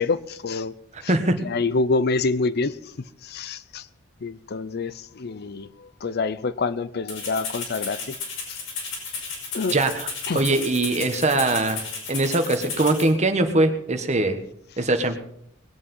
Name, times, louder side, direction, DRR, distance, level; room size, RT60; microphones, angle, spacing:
voice 1, 0.0-0.7 1.0-1.2 1.4-2.7 3.2-3.8 4.2-8.1 8.5-8.6 9.5-9.7 10.3-10.5, left 3 dB, 55° left, 0.6 m, -26 dB
voice 2, 0.9-1.4 9.7-10.1 10.3-14.4 14.8-15.2, right 2 dB, 35° right, 1.4 m, -22 dB
Rattle (instrument), 7.1-13.1, left 4 dB, 85° left, 5.3 m, -33 dB
20.0 x 8.6 x 5.5 m
head